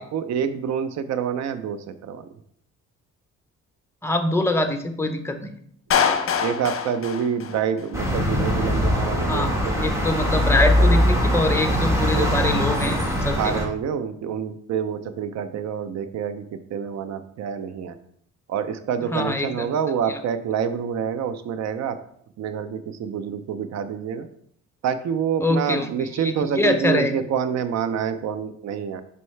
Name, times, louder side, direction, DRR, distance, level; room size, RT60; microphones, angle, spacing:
voice 1, 0.0-2.3 6.4-10.4 10.8-10.9 12.1-12.3 13.4-18.0 18.5-22.0 22.4-24.3 24.8-29.0, right 7 dB, 60° right, 11 dB, 0.6 m, -27 dB
voice 2, 4.0-5.5 9.3-9.5 9.8-13.4 19.1-19.7 20.1-20.2 25.4-27.1, left 2 dB, 10° left, 7 dB, 0.7 m, -24 dB
Clapping, 5.9-7.9, left 7 dB, 45° left, 0.8 m, -24 dB
sound 1, 7.9-13.7, equal, 10° right, 1.4 m, -21 dB
5.4 x 5.4 x 3.2 m, 0.66 s
cardioid pair, 90°, 30 cm